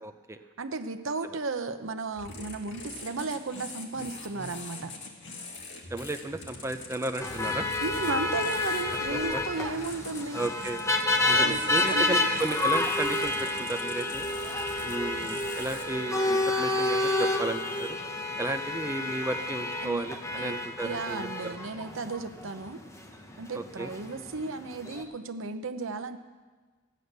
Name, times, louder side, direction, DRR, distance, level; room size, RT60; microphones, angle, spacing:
voice 1, 0.0-0.4 5.9-7.7 9.1-9.4 10.3-10.8 11.3-14.3 14.8-18.0 18.4-21.5 23.5-23.9, right 2 dB, 15° right, 8 dB, 0.5 m, -34 dB
voice 2, 0.6-4.9 7.8-10.4 11.2-12.1 19.8-20.0 20.4-20.6 20.8-22.8 23.4-26.2, right 3 dB, 60° right, 9 dB, 0.8 m, -34 dB
sound 1, 2.1-15.8, left 3 dB, 55° left, 1.8 m, -44 dB
sound 2, 7.2-25.0, left 2 dB, 15° left, 1.0 m, -30 dB
14.5 x 9.6 x 6.7 m, 1.4 s
head